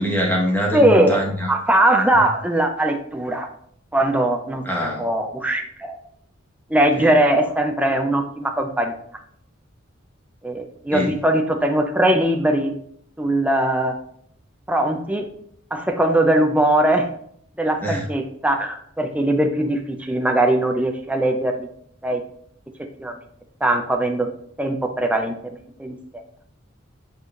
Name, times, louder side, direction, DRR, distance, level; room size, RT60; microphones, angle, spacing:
voice 1, 0.0-1.5 4.6-5.0 7.0-7.1 10.9-11.1 17.8-18.0, equal, 10° left, -2 dB, 1.3 m, -23 dB
voice 2, 0.7-1.2 1.5-3.5 3.9-4.6 5.0-6.0 6.7-8.9 10.4-12.7 13.2-14.0 14.7-15.3 15.7-17.1 17.6-21.7 22.0-22.2 23.0-23.1 23.6-24.3 24.6-25.3 25.8-26.0, right 1 dB, 5° right, 3 dB, 0.6 m, -20 dB
8.1 x 4.8 x 2.5 m, 0.65 s
head